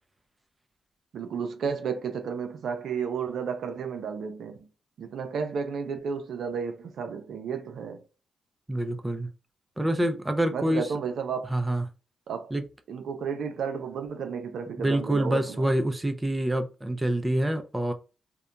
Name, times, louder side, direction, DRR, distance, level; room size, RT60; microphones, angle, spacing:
voice 1, 1.1-4.7 5.0-8.0 10.5-11.6 12.3-12.5 12.9-15.6, right 6 dB, 70° right, 0.4 m, -32 dB
voice 2, 8.7-9.3 9.8-10.9 11.5-11.8 12.5-12.6 14.8-17.9, right 1 dB, 15° right, 0.5 m, -26 dB
2.7 x 2.1 x 2.4 m
supercardioid pair, 50°, 0 cm